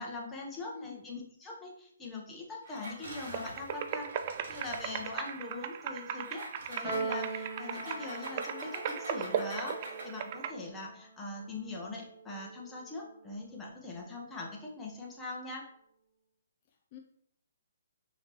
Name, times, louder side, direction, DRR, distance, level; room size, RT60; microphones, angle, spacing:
voice 1, 0.0-4.1 4.5-15.6, left 2 dB, 10° left, -3 dB, 1.0 m, -42 dB
voice 2, 0.6-1.1 16.7-17.0, left 5 dB, 35° left, 2 dB, 0.4 m, -48 dB
Engine, 2.6-5.4 6.2-10.3, right 1 dB, 60° right, 1.5 m, -47 dB
sound 1, 3.3-10.5, right 8 dB, 40° right, 0.3 m, -38 dB
Piano, 6.8-13.4, right 3 dB, 20° right, 1.6 m, -42 dB
4.9 x 3.0 x 3.0 m, 0.70 s
figure-of-eight pair, 135°, 0 cm